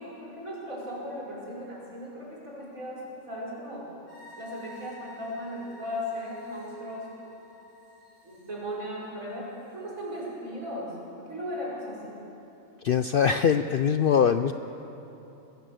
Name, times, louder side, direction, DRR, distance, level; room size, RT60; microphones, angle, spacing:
voice 1, 0.0-3.9 4.4-7.1 8.2-12.1, equal, 75° right, -5 dB, 5.9 m, -37 dB
sound 1, 4.1-10.3, left 1 dB, 40° left, 5.8 m, -52 dB
voice 2, 12.8-14.5, left 7 dB, 60° left, 10 dB, 0.5 m, -22 dB
21.0 x 16.5 x 7.8 m, 3.0 s
omnidirectional pair, 1.4 m